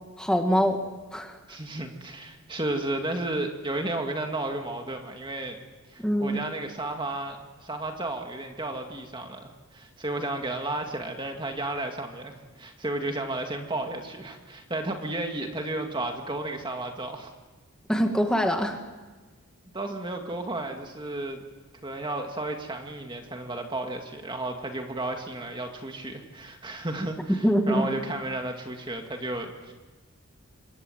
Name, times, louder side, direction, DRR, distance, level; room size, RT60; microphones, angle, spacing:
voice 1, 0.2-0.8 1.1-1.4 6.0-6.4 17.9-18.8 27.4-27.9, equal, 5° left, 4 dB, 2.2 m, -23 dB
voice 2, 1.5-5.6 5.9-17.3 19.7-21.4 21.8-29.7, right 2 dB, 20° right, 3 dB, 2.1 m, -33 dB
26.5 x 23.0 x 9.3 m, 1.3 s
head